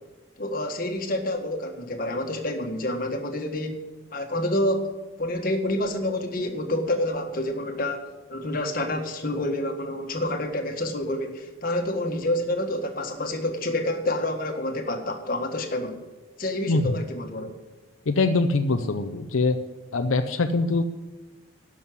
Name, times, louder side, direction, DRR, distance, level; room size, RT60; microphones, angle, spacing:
voice 1, 0.4-3.8 4.1-16.0 16.4-17.5, left 1 dB, 45° left, 3 dB, 1.6 m, -28 dB
voice 2, 16.7-17.0 18.1-19.6 19.9-20.8, left 3 dB, 85° left, 7 dB, 0.6 m, -23 dB
11.0 x 6.4 x 9.3 m, 1.2 s
head